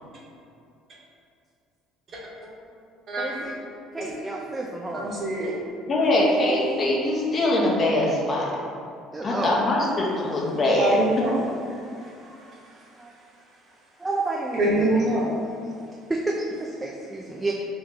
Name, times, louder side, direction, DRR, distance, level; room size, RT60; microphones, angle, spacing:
voice 1, 3.2-3.6 3.9-5.1 9.1-9.6 13.0-13.1 14.0-15.2 16.1-17.5, right 2 dB, 15° right, -3 dB, 0.4 m, -30 dB
voice 2, 4.9-5.5 10.6-11.4 11.7-12.6 14.5-15.3, right 1 dB, 40° right, -4 dB, 0.9 m, -25 dB
voice 3, 5.9-8.5 9.2-11.0, left 1 dB, 35° left, -3 dB, 0.7 m, -22 dB
2.9 x 2.8 x 3.6 m, 2.4 s
figure-of-eight pair, 55°, 0 cm